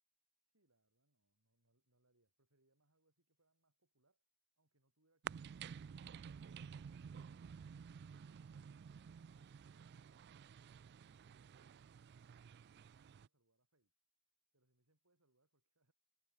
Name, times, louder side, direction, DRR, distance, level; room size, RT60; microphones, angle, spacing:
voice 1, 0.4-4.3 4.6-8.8 10.9-11.9 12.4-13.9 14.5-15.9, right 2 dB, 80° right, 5.3 m, -82 dB
sound 1, 5.2-13.3, right 7 dB, 50° right, 0.4 m, -52 dB
head